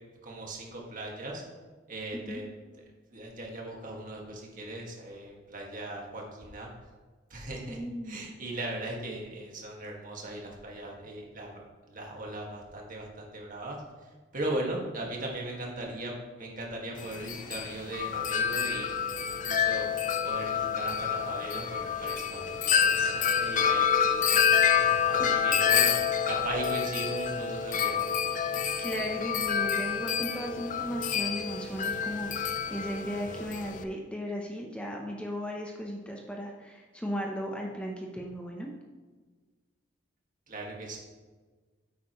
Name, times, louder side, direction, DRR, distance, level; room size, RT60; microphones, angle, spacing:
voice 1, 0.2-1.4 1.9-2.5 3.1-6.7 7.3-7.8 8.0-13.8 14.3-18.9 19.2-26.0 26.2-28.1 40.5-41.0, right 1 dB, 45° right, -1 dB, 1.9 m, -38 dB
voice 2, 7.6-8.2 25.2-25.5 28.5-38.7, equal, 5° left, 0 dB, 0.8 m, -36 dB
Wind chime, 17.0-33.8, left 7 dB, 40° left, 0.5 m, -28 dB
9.1 x 8.5 x 3.1 m, 1.4 s
head